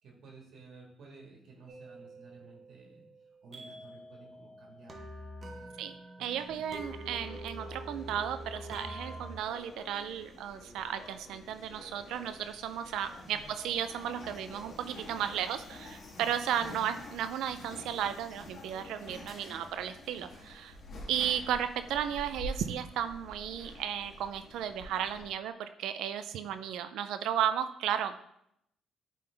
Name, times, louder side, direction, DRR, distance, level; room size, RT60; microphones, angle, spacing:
voice 1, 0.0-3.0 3.4-5.1 5.5-5.9 6.2-6.6 8.0-8.2 13.0-13.4, right 3 dB, 65° right, 0 dB, 1.6 m, -54 dB
sound 1, 1.7-9.3, right 1 dB, 35° right, 1.1 m, -45 dB
voice 2, 6.2-20.8 21.1-28.2, right 9 dB, 85° right, 10 dB, 0.4 m, -34 dB
sound 2, 6.4-25.3, left 1 dB, 55° left, 1.7 m, -48 dB
9.1 x 3.8 x 3.3 m, 0.75 s
cardioid pair, 90°, 0 cm